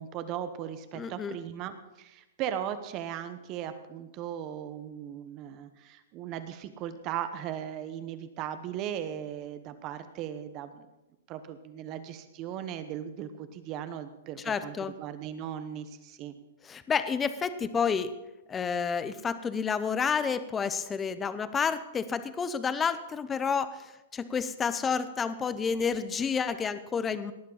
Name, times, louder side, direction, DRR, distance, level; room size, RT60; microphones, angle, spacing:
voice 1, 0.0-10.9 11.3-16.4, right 10 dB, 30° right, 10 dB, 0.9 m, -38 dB
voice 2, 0.9-1.4 14.4-14.9 16.6-18.1 18.5-27.3, left 6 dB, 15° left, 13 dB, 0.6 m, -30 dB
18.5 x 7.4 x 5.6 m, 1.0 s
hypercardioid pair, 155°, 0 cm